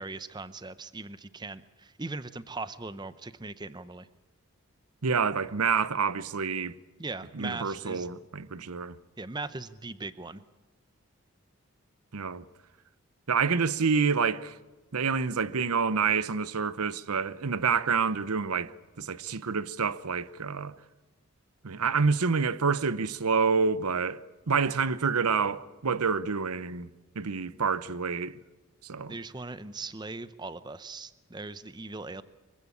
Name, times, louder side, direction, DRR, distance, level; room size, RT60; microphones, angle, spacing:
voice 1, 0.0-4.1 7.0-8.1 8.6-8.7 9.2-10.4 29.1-32.2, right 3 dB, 20° right, 0.7 m, -39 dB
voice 2, 5.0-6.8 7.3-9.0 12.1-12.4 13.3-14.6 14.9-20.8 21.6-24.2 24.5-26.9 27.1-28.4 28.8-29.1, right 5 dB, 85° right, 0.8 m, -28 dB
24.0 x 16.0 x 8.5 m
head